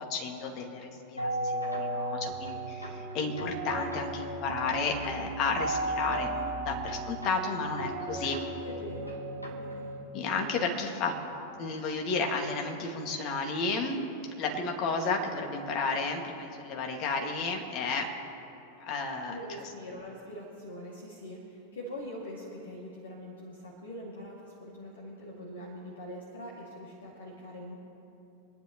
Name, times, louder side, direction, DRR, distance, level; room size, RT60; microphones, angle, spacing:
voice 1, 0.1-8.4 10.1-11.1 11.6-14.0 14.4-18.1 18.8-19.3, left 4 dB, 40° left, 2 dB, 1.9 m, -32 dB
sound 1, 1.2-10.0, right 1 dB, 85° left, 1.8 m, -35 dB
voice 2, 8.6-10.0 19.3-27.7, equal, 65° left, -4 dB, 2.3 m, -43 dB
26.0 x 10.5 x 3.0 m, 3.0 s
figure-of-eight pair, 90°, 0 cm